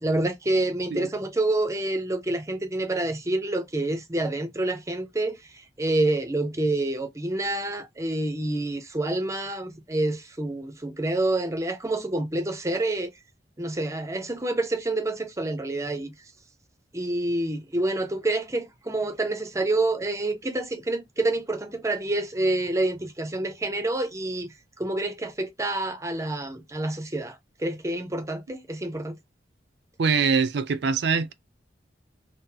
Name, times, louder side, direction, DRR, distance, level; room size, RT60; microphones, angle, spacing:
voice 1, 0.0-13.1 13.6-16.1 16.9-24.5 24.8-29.2, right 2 dB, 15° right, 0.5 m, -27 dB
voice 2, 30.0-31.3, right 5 dB, 70° right, 0.4 m, -23 dB
3.8 x 2.0 x 2.7 m
head